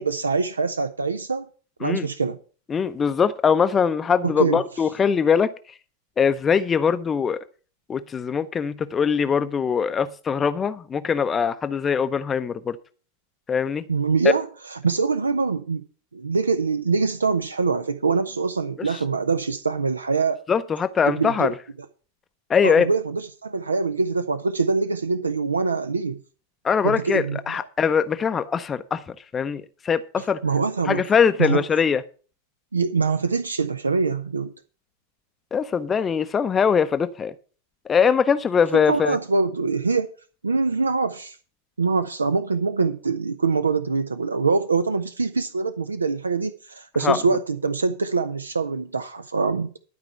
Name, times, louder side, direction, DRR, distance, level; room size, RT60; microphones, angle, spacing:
voice 1, 0.0-1.5 1.8-2.4 4.2-4.6 13.9-15.8 16.1-20.4 21.1-21.5 22.6-26.2 26.8-27.6 30.4-31.0 31.4-31.6 32.7-34.5 38.7-40.1 40.4-41.4 41.8-49.7, right 4 dB, 75° right, 0.6 m, -24 dB
voice 2, 2.7-5.5 6.2-7.4 7.9-12.8 13.5-13.8 18.8-19.0 20.5-21.5 22.5-22.9 26.6-29.0 29.3-30.4 30.8-32.0 35.5-37.3 37.9-39.2 47.0-47.2, left 6 dB, 20° left, 0.6 m, -22 dB
12.0 x 4.9 x 8.1 m
figure-of-eight pair, 90°, 0 cm